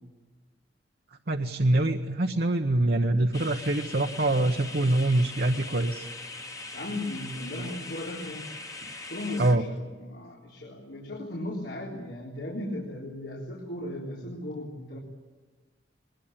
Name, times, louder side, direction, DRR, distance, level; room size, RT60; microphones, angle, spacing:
voice 1, 1.3-6.1 9.4-9.6, right 2 dB, 60° right, 4 dB, 1.0 m, -24 dB
sound 1, 3.3-9.6, left 3 dB, 20° left, 1.4 m, -41 dB
voice 2, 6.7-8.5 9.1-15.0, left 1 dB, 70° left, -3 dB, 3.7 m, -36 dB
21.5 x 21.0 x 8.8 m, 1.3 s
head